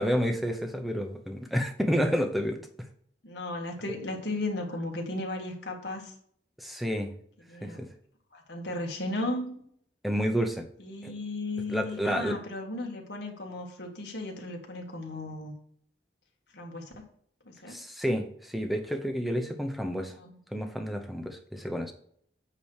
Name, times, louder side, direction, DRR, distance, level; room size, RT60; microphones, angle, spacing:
voice 1, 0.0-2.6 6.6-7.1 7.6-7.9 10.0-10.7 11.0-11.1 11.7-12.4 17.7-20.1 20.5-21.9, equal, ahead, 4 dB, 0.8 m, -30 dB
voice 2, 3.2-6.1 7.5-7.9 8.3-9.6 10.8-15.5 16.5-16.9 17.5-17.8 20.0-20.3, left 2 dB, 70° left, 1 dB, 1.8 m, -35 dB
8.7 x 3.1 x 6.3 m, 0.63 s
head